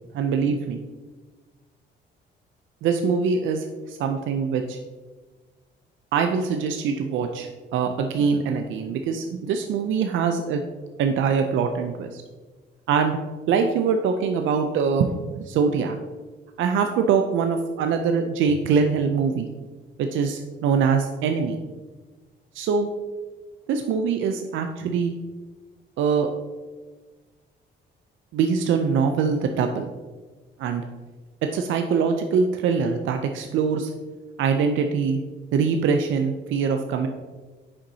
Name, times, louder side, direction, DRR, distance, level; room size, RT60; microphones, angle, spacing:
voice 1, 0.1-0.8 2.8-4.8 6.1-10.6 11.0-12.2 12.9-13.2 13.5-15.1 15.4-16.0 16.6-19.5 20.0-21.6 22.5-22.9 23.7-25.1 26.0-26.3 28.3-29.9 30.6-30.8 31.5-33.9 34.4-35.2 35.5-37.1, right 6 dB, 75° right, 5 dB, 0.5 m, -23 dB
7.1 x 5.3 x 2.7 m, 1.3 s
cardioid pair, 90°, 20 cm